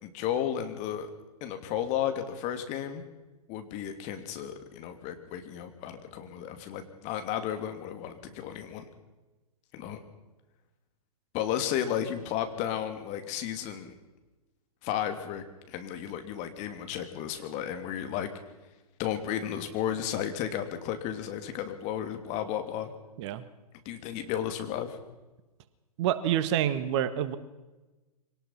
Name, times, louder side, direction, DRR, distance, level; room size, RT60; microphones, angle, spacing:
voice 1, 0.0-1.1 1.4-3.0 3.5-8.8 9.7-10.0 11.3-13.9 14.8-18.3 19.0-22.9 23.8-25.0, left 10 dB, 35° left, 7 dB, 2.8 m, -33 dB
voice 2, 26.0-27.4, right 10 dB, 45° right, 13 dB, 1.5 m, -27 dB
24.5 x 18.5 x 5.8 m, 1.1 s
figure-of-eight pair, 115°, 20 cm